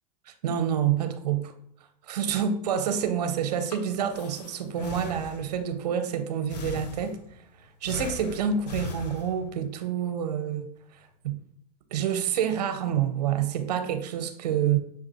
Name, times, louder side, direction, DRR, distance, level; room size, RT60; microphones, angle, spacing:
voice 1, 0.3-1.5 2.0-11.4 11.9-14.8, right 8 dB, 80° right, 8 dB, 0.7 m, -28 dB
Breathing, 3.4-5.7 6.5-7.4 7.8-9.7, left 4 dB, 90° left, 0.6 m, -39 dB
6.6 x 2.5 x 2.8 m, 0.69 s
hypercardioid pair, 105°, 20 cm